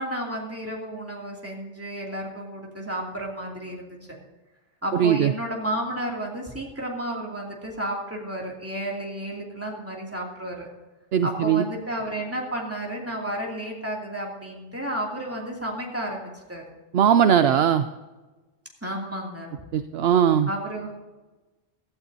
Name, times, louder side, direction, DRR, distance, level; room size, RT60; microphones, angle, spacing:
voice 1, 0.0-4.0 4.8-10.7 11.2-16.6 18.8-19.5 20.5-20.9, right 1 dB, 10° right, -2 dB, 2.7 m, -32 dB
voice 2, 4.9-5.3 11.1-11.6 16.9-17.9 19.7-20.5, right 8 dB, 70° right, 10 dB, 0.8 m, -19 dB
16.5 x 13.5 x 2.8 m, 1.2 s
omnidirectional pair, 1.2 m